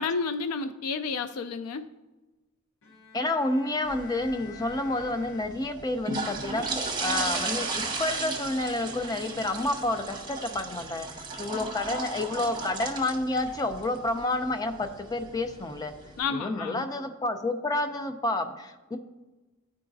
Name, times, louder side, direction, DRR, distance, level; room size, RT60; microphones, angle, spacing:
voice 1, 0.0-1.9 16.2-16.8, left 5 dB, 85° left, 10 dB, 0.4 m, -31 dB
Bowed string instrument, 2.8-6.0, left 7 dB, 70° left, 0.9 m, -50 dB
voice 2, 3.1-7.7 8.0-15.9 16.3-19.0, left 2 dB, 15° left, 7 dB, 0.4 m, -29 dB
sound 1, 3.8-16.2, right 3 dB, 20° right, 0.9 m, -36 dB
13.5 x 4.7 x 2.6 m, 1.1 s
head